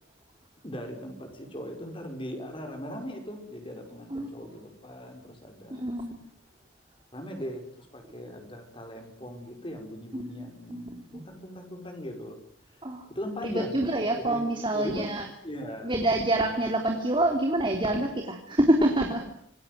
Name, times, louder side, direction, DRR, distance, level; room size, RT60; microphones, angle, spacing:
voice 1, 0.6-5.9 7.1-12.4 12.7-12.8 13.1-13.8 14.1-14.4 14.7-15.0 15.4-15.9, equal, 25° left, 4 dB, 5.6 m, -39 dB
voice 2, 5.7-6.2 10.1-10.8 11.1-11.2 12.8-13.0 13.4-15.3 15.8-19.3, right 1 dB, 25° right, 3 dB, 3.4 m, -26 dB
27.0 x 20.5 x 9.5 m, 0.66 s
head